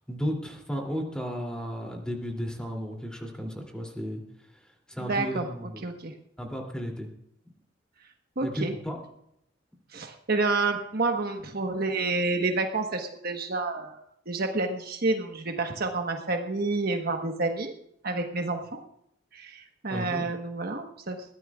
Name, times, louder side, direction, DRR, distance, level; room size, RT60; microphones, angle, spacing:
voice 1, 0.1-4.2 4.9-5.8 6.4-7.1 8.4-9.0 19.9-20.2, equal, 5° left, 1 dB, 2.8 m, -34 dB
voice 2, 5.0-5.5 5.8-6.1 8.4-8.7 9.9-17.7 18.0-18.8 19.3-21.2, right 3 dB, 55° right, 4 dB, 1.3 m, -29 dB
21.5 x 15.0 x 2.4 m, 0.75 s
head